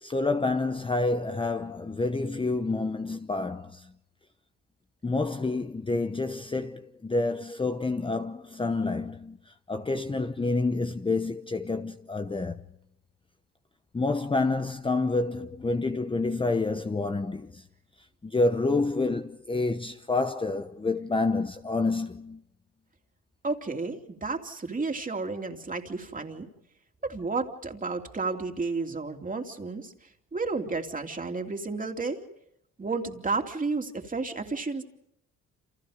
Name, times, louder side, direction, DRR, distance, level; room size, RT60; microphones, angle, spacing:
voice 1, 0.0-3.8 5.0-9.4 9.7-12.6 13.9-17.6 18.2-22.4, left 3 dB, 15° left, 0.9 m, -28 dB
voice 2, 23.4-26.5 27.0-29.9 30.3-32.2 32.8-34.8, right 3 dB, 25° right, 2.9 m, -32 dB
28.5 x 28.0 x 5.1 m
cardioid pair, 90°, 30 cm